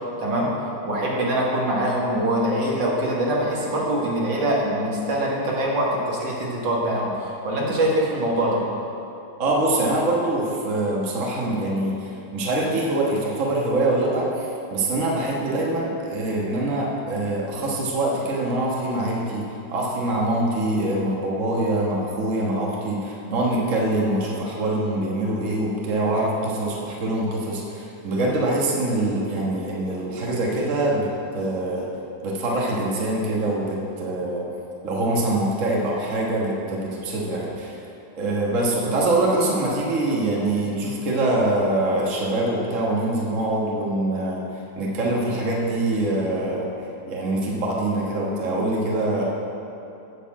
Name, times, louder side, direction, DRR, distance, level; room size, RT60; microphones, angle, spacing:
voice 1, 0.2-0.5 0.8-8.6, right 1 dB, 75° right, -3 dB, 2.3 m, -23 dB
voice 2, 9.4-19.4 19.7-31.9 32.2-34.5 34.8-37.8 38.2-44.4 44.7-46.7 47.1-49.2, right 1 dB, 45° right, -3 dB, 1.6 m, -24 dB
8.3 x 6.8 x 7.3 m, 2.9 s
omnidirectional pair, 2.0 m